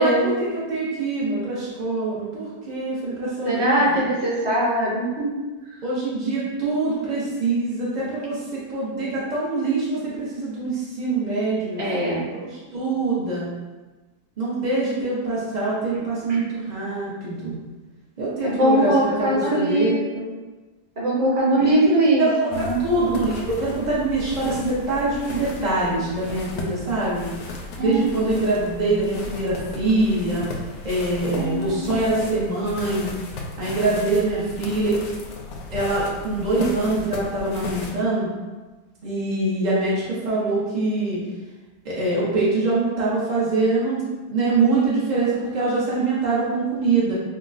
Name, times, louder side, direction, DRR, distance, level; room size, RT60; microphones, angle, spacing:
voice 1, 0.0-4.0 5.8-13.5 14.4-17.6 18.2-20.0 21.6-21.7 22.2-27.3 27.8-30.5 30.8-33.1 33.6-35.0 35.7-38.3 39.0-41.2 41.8-47.1, right 2 dB, 60° right, -7 dB, 0.4 m, -24 dB
voice 2, 3.4-5.4 11.8-12.2 15.9-16.0 16.3-16.5 18.4-20.2 21.0-22.8 27.8-28.2 31.3-32.1, right 1 dB, 40° right, -7 dB, 0.9 m, -21 dB
sound 1, 22.5-37.9, left 3 dB, 70° left, 0.9 m, -35 dB
4.7 x 2.0 x 2.4 m, 1.2 s
omnidirectional pair, 1.7 m